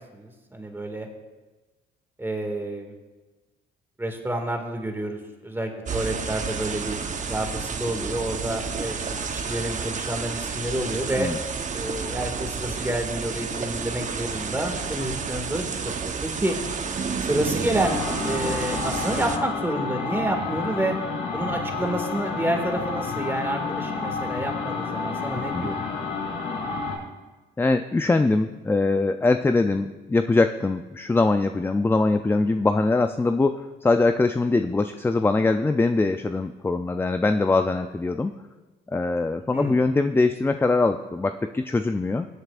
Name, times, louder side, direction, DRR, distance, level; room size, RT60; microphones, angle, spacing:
voice 1, 0.1-1.1 2.2-3.0 4.0-7.0 7.3-11.3 11.7-15.6 16.0-16.6 17.2-21.0 21.3-25.8 32.5-32.6 39.5-39.8, right 1 dB, 10° right, 3 dB, 2.0 m, -29 dB
sound 1, 5.9-19.4, right 5 dB, 40° right, 0.9 m, -30 dB
sound 2, 17.7-27.0, left 4 dB, 60° left, 3.5 m, -30 dB
voice 2, 25.3-25.7 27.6-38.3 38.9-42.3, left 3 dB, 10° left, 8 dB, 0.4 m, -22 dB
22.5 x 7.9 x 2.5 m, 1.2 s
cardioid pair, 90°, 20 cm